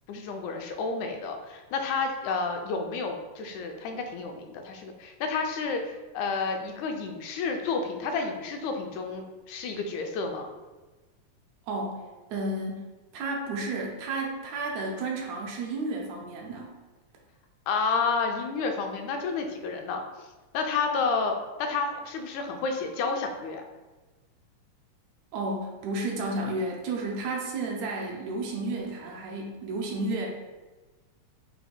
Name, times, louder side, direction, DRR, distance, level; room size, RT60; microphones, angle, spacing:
voice 1, 0.1-10.5 17.7-20.0 20.5-23.6, left 4 dB, 85° left, 4 dB, 2.0 m, -30 dB
voice 2, 11.7-12.0 12.3-12.9 13.1-16.7 25.3-30.3, right 2 dB, 80° right, -1 dB, 2.0 m, -32 dB
5.5 x 2.3 x 4.2 m, 1.2 s
omnidirectional pair, 3.3 m